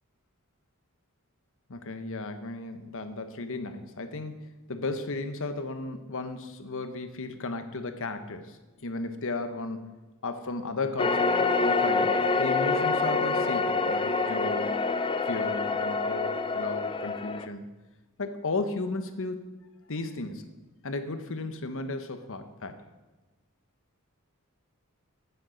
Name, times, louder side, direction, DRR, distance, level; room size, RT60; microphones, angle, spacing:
voice 1, 1.7-4.3 4.7-9.8 10.2-12.1 12.4-14.8 15.2-17.7 18.2-19.5 19.9-20.5 20.8-22.8, left 3 dB, 60° left, 8 dB, 1.1 m, -34 dB
sound 1, 11.0-17.5, left 4 dB, 25° left, 0.5 m, -26 dB
11.5 x 9.5 x 5.2 m, 1.2 s
head